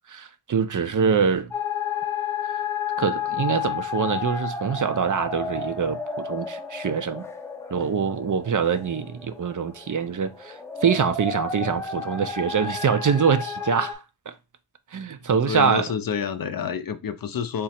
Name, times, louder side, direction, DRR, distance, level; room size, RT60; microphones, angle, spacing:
voice 1, 0.1-1.5 3.0-7.2 7.7-10.6 10.8-14.0 14.3-14.4 14.9-15.9, right 6 dB, 45° right, 0.5 m, -24 dB
sound 1, 1.5-13.9, left 6 dB, 5° left, 0.5 m, -31 dB
voice 2, 15.3-17.6, left 7 dB, 55° left, 0.5 m, -28 dB
3.6 x 2.0 x 4.2 m
wide cardioid pair, 75°, 43 cm